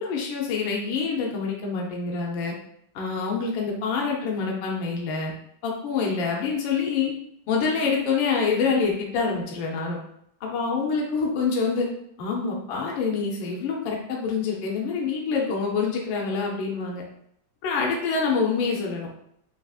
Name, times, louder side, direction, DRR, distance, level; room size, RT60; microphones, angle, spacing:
voice 1, 0.0-2.5 2.9-5.3 5.6-7.1 7.5-10.0 10.4-11.9 12.2-17.0 17.6-19.1, left 5 dB, 75° left, -1 dB, 1.5 m, -26 dB
4.7 x 2.9 x 2.4 m, 0.71 s
omnidirectional pair, 2.2 m